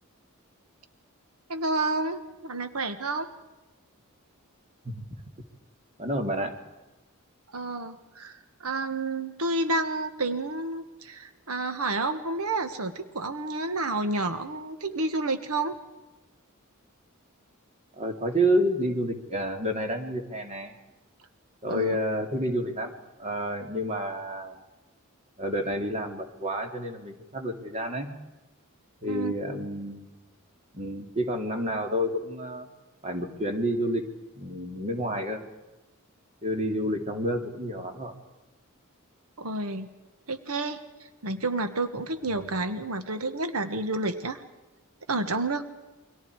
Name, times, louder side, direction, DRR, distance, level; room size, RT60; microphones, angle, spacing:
voice 1, 1.5-3.3 7.5-15.8 21.7-22.0 29.1-29.3 39.4-39.9 40.3-40.8 41.2-44.4 45.1-45.6, right 2 dB, 90° right, 9 dB, 1.5 m, -30 dB
voice 2, 6.0-6.6 17.9-20.7 21.6-22.9 23.2-24.6 25.4-28.1 29.0-30.1 30.7-32.7 33.0-34.1 34.3-35.4 36.4-38.1, equal, 30° right, 4 dB, 2.8 m, -29 dB
29.0 x 24.5 x 4.8 m, 1.1 s
head